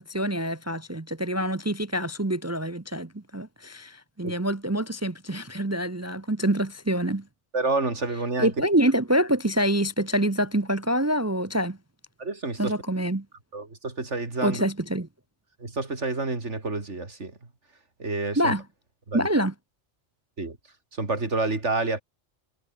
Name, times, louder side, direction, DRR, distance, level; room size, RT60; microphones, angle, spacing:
voice 1, 0.0-7.2 8.4-11.8 12.6-13.2 14.4-15.1 18.4-18.6 19.1-19.5, right 1 dB, 15° right, 0.7 m, -26 dB
voice 2, 7.5-8.5 12.2-12.7 13.5-14.6 15.6-17.3 18.0-18.5 19.1-19.3 20.4-20.6 21.0-22.0, right 3 dB, 85° right, 3.7 m, -28 dB
omnidirectional pair, 1.2 m